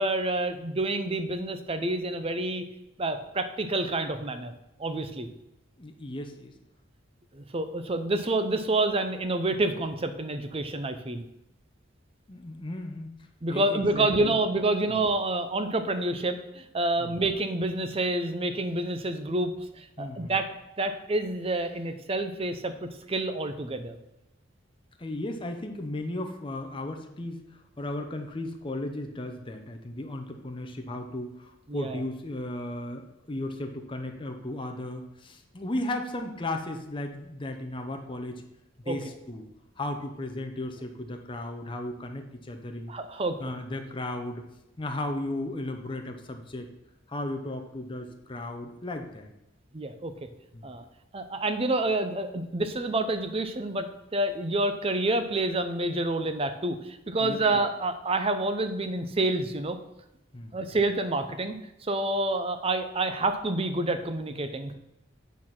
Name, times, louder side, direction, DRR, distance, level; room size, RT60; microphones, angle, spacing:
voice 1, 0.0-2.6 3.0-4.5 4.8-5.3 7.3-11.2 13.4-20.5 20.8-24.0 31.7-32.0 38.9-39.0 42.9-43.4 49.7-50.1 50.6-50.8 51.1-53.9 54.1-59.8 60.5-61.6 61.8-64.8, right 2 dB, 30° right, 9 dB, 0.6 m, -28 dB
voice 2, 5.8-6.5 12.3-13.1 13.5-14.4 14.9-15.0 17.0-17.2 20.0-20.3 25.0-27.4 27.8-38.4 38.9-39.4 39.8-42.9 43.4-44.4 44.8-46.7 47.1-49.3 50.5-50.7 57.2-57.4 60.3-60.5, left 1 dB, 25° left, 4 dB, 0.7 m, -35 dB
8.7 x 4.1 x 5.9 m, 0.90 s
head